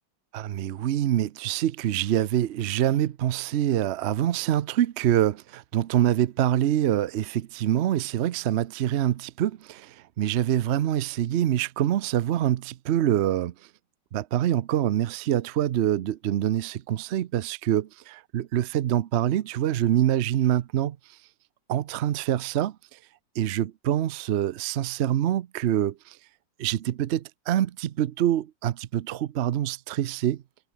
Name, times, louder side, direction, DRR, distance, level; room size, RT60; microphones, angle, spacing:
voice 1, 0.3-13.5 14.1-21.0 21.7-23.0 23.4-26.2 26.6-30.4, right 11 dB, 90° right, 0.5 m, -25 dB
omnidirectional pair, 2.0 m